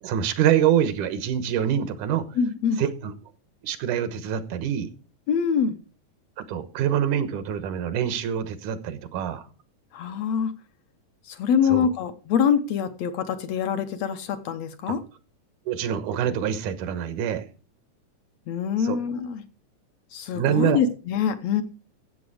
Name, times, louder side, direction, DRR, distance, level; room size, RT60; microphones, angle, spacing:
voice 1, 0.0-2.3 2.8-3.1 3.6-4.9 6.4-9.5 11.7-11.9 14.9-15.0 15.7-17.4 18.8-19.0 20.3-20.8, right 9 dB, 85° right, 2.5 m, -25 dB
voice 2, 2.4-2.8 5.3-5.8 9.9-10.5 11.2-15.0 18.5-19.4 20.1-21.6, left 7 dB, 70° left, 1.8 m, -24 dB
14.0 x 7.7 x 4.9 m
omnidirectional pair, 3.5 m